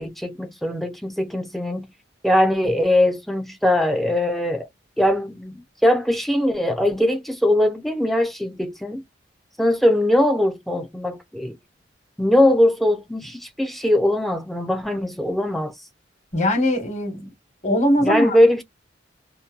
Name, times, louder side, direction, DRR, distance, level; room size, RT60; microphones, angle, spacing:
voice 1, 0.0-1.9 2.2-4.7 5.0-9.0 9.6-11.6 12.2-15.7 18.0-18.6, left 1 dB, ahead, 0.4 m, -21 dB
voice 2, 16.3-17.3 17.6-18.4, equal, 35° left, 1.1 m, -21 dB
2.7 x 2.1 x 2.3 m
head